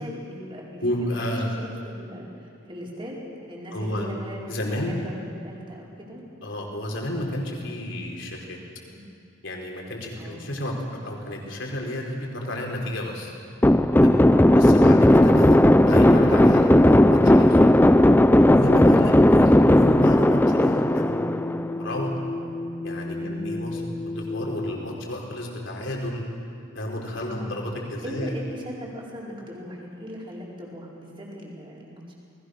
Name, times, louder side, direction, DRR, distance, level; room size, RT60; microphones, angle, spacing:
voice 1, 0.0-4.4 4.8-5.2 5.4-6.2 8.9-9.1 10.1-10.4 23.2-23.5 27.2-27.5 28.0-32.1, equal, 25° right, -4 dB, 4.9 m, -39 dB
voice 2, 0.8-1.5 3.7-4.1 4.5-5.0 6.4-8.6 9.4-10.7 11.0-13.3 14.0-14.2 14.5-17.6 18.4-21.2 21.8-22.1 22.8-26.2 26.7-28.3, left 1 dB, 65° left, 0 dB, 4.5 m, -31 dB
sound 1, 13.6-21.9, left 1 dB, 10° left, 0.5 m, -16 dB
sound 2, 20.1-24.7, left 2 dB, 30° left, 1.9 m, -33 dB
29.0 x 20.0 x 6.6 m, 2.4 s
head